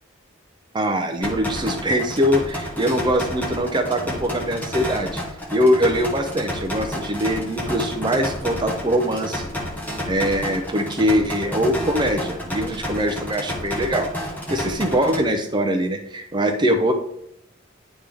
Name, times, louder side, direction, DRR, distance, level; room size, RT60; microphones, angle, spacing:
voice 1, 0.7-5.2 5.5-9.5 10.1-14.1 14.5-16.9, equal, 25° right, 5 dB, 0.5 m, -22 dB
sound 1, 1.2-15.2, equal, 10° left, 1.3 m, -30 dB
10.0 x 3.6 x 3.4 m, 0.73 s
head